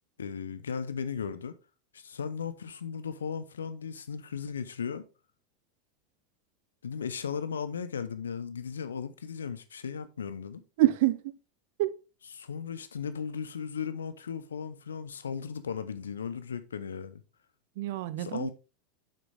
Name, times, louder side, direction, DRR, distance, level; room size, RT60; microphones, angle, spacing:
voice 1, 0.2-1.5 1.9-5.0 6.8-10.6 12.4-17.2 18.2-18.5, left 6 dB, 80° left, 0.7 m, -36 dB
voice 2, 10.8-11.4 11.8-11.9 17.8-18.5, right 16 dB, 60° right, 0.6 m, -26 dB
6.8 x 6.2 x 3.4 m
hypercardioid pair, 90°, 0 cm